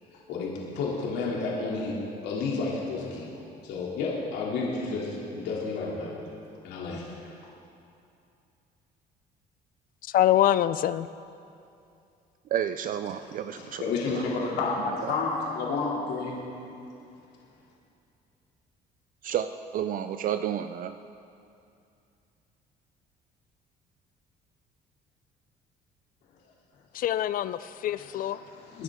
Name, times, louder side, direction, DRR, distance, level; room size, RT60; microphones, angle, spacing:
voice 1, 0.1-1.9 2.2-3.3 3.6-6.1 6.6-7.1 13.2-16.3 28.0-28.8, left 4 dB, 90° left, -5 dB, 2.7 m, -31 dB
voice 2, 10.1-11.1 26.9-28.4, left 12 dB, 55° left, 15 dB, 0.4 m, -24 dB
voice 3, 12.5-13.8 19.2-20.9, right 10 dB, 55° right, 10 dB, 0.5 m, -30 dB
23.0 x 10.5 x 3.6 m, 2.6 s
cardioid pair, 110°, 17 cm